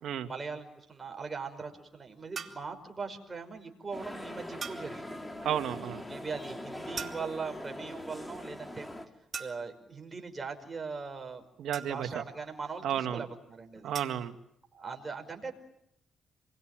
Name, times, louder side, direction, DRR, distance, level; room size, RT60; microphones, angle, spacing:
voice 1, 0.3-5.3 6.1-8.9 9.4-11.5 11.9-13.9 14.7-15.5, right 4 dB, 25° right, 4 dB, 5.4 m, -40 dB
sound 1, 2.4-2.7 4.6-5.0 7.0-7.5 9.3-9.8 11.7-12.3 13.9-14.3, right 6 dB, 45° right, 2.9 m, -41 dB
sound 2, 3.9-9.1, left 1 dB, 10° left, 3.2 m, -42 dB
voice 2, 5.4-6.0 11.6-12.2 12.8-13.2 13.8-14.3, right 10 dB, 75° right, 7 dB, 2.0 m, -32 dB
28.0 x 22.5 x 9.1 m, 0.75 s
cardioid pair, 90°, 0 cm